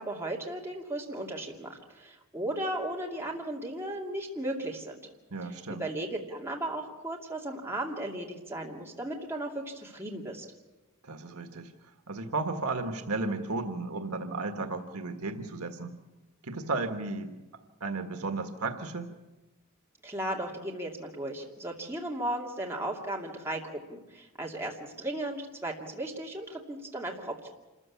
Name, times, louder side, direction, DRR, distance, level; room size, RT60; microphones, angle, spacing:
voice 1, 0.0-5.0 5.7-10.4 20.0-27.5, right 1 dB, 10° right, -2 dB, 2.7 m, -36 dB
voice 2, 5.3-5.8 11.0-11.7 12.1-15.9 16.4-17.4 17.8-19.1, right 3 dB, 80° right, 6 dB, 1.6 m, -34 dB
27.0 x 14.5 x 8.7 m, 1.1 s
head